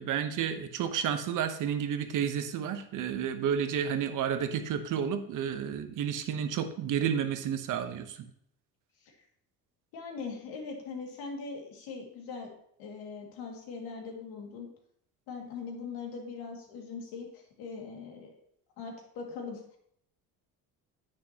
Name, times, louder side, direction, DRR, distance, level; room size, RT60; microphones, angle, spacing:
voice 1, 0.0-8.3, right 8 dB, 60° right, 9 dB, 1.0 m, -31 dB
voice 2, 9.9-12.5 12.8-14.7 15.3-18.4 18.8-19.8, left 4 dB, 85° left, 1 dB, 2.3 m, -41 dB
9.8 x 8.4 x 2.9 m, 0.68 s
cardioid pair, 135°, 35 cm